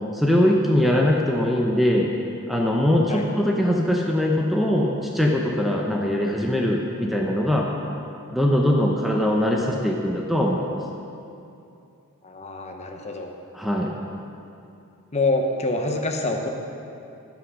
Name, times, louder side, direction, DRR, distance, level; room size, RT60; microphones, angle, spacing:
voice 1, 0.1-2.1 2.5-7.7 8.3-10.7 13.5-13.9, left 1 dB, ahead, -1 dB, 0.7 m, -21 dB
voice 2, 12.2-13.3 15.1-16.5, left 2 dB, 30° left, 3 dB, 1.0 m, -26 dB
15.0 x 5.9 x 6.3 m, 2.7 s
head